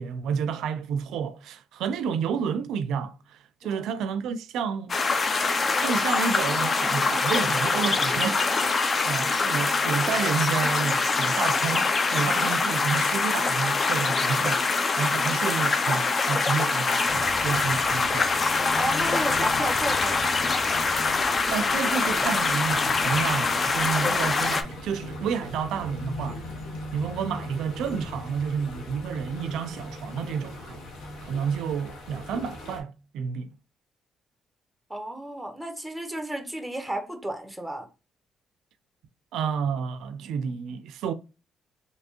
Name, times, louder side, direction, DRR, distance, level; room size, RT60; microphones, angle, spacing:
voice 1, 0.0-4.9 5.8-8.8 9.0-14.7 15.0-18.3 21.5-26.4 26.9-30.8 31.2-33.5 39.3-41.1, right 6 dB, 85° right, 0.3 m, -30 dB
sound 1, 4.9-24.6, left 4 dB, 35° left, 0.4 m, -24 dB
voice 2, 9.0-9.4 18.8-20.2 34.9-37.9, right 1 dB, 5° right, 0.8 m, -33 dB
sound 2, 17.1-32.8, left 2 dB, 80° left, 0.9 m, -39 dB
3.3 x 2.8 x 2.8 m
cardioid pair, 90°, 0 cm